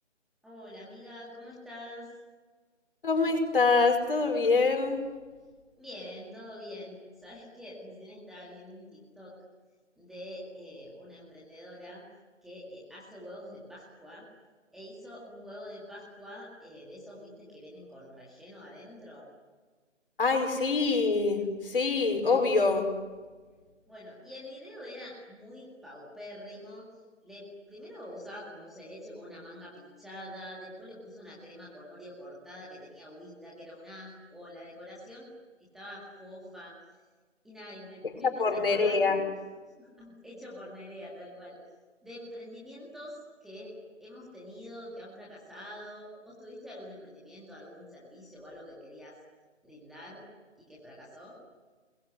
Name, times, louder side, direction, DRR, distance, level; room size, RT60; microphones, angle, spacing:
voice 1, 0.4-2.1 5.8-9.4 10.0-12.0 12.4-14.2 14.7-19.3 23.9-26.9 27.2-35.3 35.7-36.7 37.4-39.0 39.8-41.6 42.0-43.7 44.0-49.2 49.6-50.3 50.6-51.4, left 1 dB, ahead, -6 dB, 2.2 m, -46 dB
voice 2, 3.0-5.0 20.2-22.9 38.2-39.2, left 4 dB, 45° left, 6 dB, 5.2 m, -25 dB
28.0 x 21.5 x 9.7 m, 1.4 s
figure-of-eight pair, 155°, 38 cm